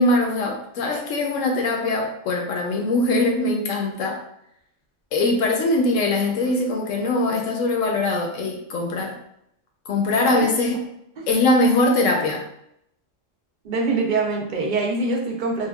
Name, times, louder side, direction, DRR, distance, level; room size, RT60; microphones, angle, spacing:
voice 1, 0.0-4.2 5.1-9.2 9.9-10.8 11.3-12.4, left 2 dB, 80° left, 2 dB, 1.0 m, -21 dB
voice 2, 13.6-15.7, right 3 dB, 65° right, 0 dB, 0.5 m, -24 dB
3.4 x 2.3 x 2.2 m, 0.75 s
omnidirectional pair, 1.3 m